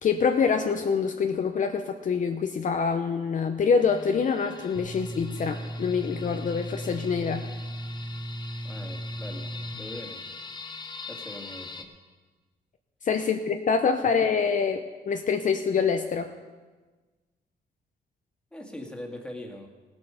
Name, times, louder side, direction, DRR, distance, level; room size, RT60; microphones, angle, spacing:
voice 1, 0.0-7.5 13.0-16.3, left 5 dB, 50° left, 5 dB, 0.7 m, -25 dB
sound 1, 3.8-11.8, left 4 dB, 25° left, 1.0 m, -43 dB
sound 2, 4.7-9.7, right 1 dB, 85° right, 2.7 m, -36 dB
voice 2, 8.6-10.2 11.1-11.9 13.2-13.3 18.5-19.7, left 1 dB, 5° left, 1 dB, 1.9 m, -41 dB
17.5 x 7.9 x 5.6 m, 1.3 s
cardioid pair, 105°, 18 cm